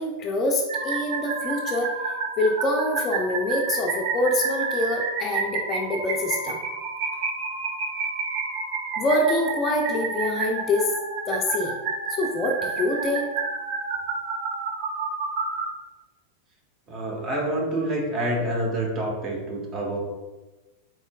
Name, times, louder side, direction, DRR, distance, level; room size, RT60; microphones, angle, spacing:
voice 1, 0.0-1.9 2.4-6.6 9.0-10.9 11.3-11.7 12.2-13.4, left 1 dB, 30° left, 1 dB, 0.5 m, -25 dB
sound 1, 0.7-15.7, right 4 dB, 50° right, 0.5 m, -29 dB
voice 2, 16.9-20.0, right 1 dB, 30° right, -2 dB, 1.0 m, -27 dB
4.2 x 3.1 x 2.3 m, 1.1 s
figure-of-eight pair, 90°, 0 cm